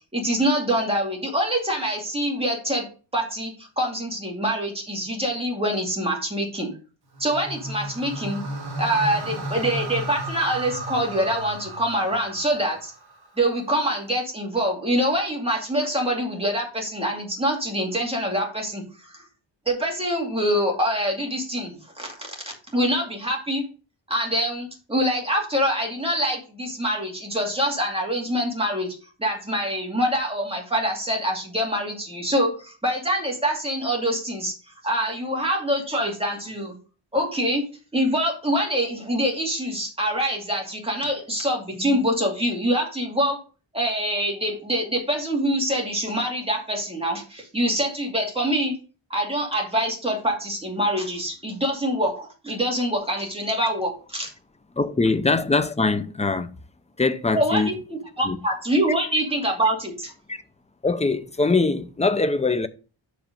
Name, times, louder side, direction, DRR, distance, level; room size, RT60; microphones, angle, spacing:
voice 1, 0.1-2.9 3.1-6.7 7.2-8.4 8.8-12.9 13.4-19.2 19.7-22.3 22.7-23.6 24.1-34.5 34.8-36.7 37.1-37.7 37.9-43.4 43.7-48.8 49.1-54.3 57.3-60.1, equal, 10° right, 2.3 m, -25 dB
sound 1, 7.1-13.4, right 1 dB, 50° right, 1.6 m, -34 dB
voice 2, 54.8-56.5 57.0-57.7 58.2-58.4 60.3-60.4 60.8-62.7, left 3 dB, 15° left, 0.5 m, -22 dB
6.6 x 5.0 x 5.2 m
wide cardioid pair, 165°, 48 cm